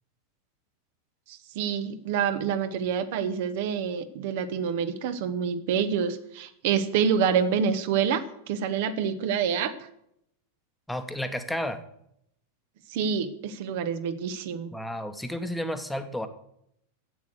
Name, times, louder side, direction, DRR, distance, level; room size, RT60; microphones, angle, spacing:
voice 1, 1.3-9.7 12.9-14.7, right 7 dB, 50° right, 10 dB, 1.2 m, -27 dB
voice 2, 10.9-11.8 14.7-16.3, left 1 dB, 5° left, 8 dB, 1.3 m, -32 dB
11.0 x 8.6 x 8.0 m, 0.75 s
figure-of-eight pair, 90°, 0 cm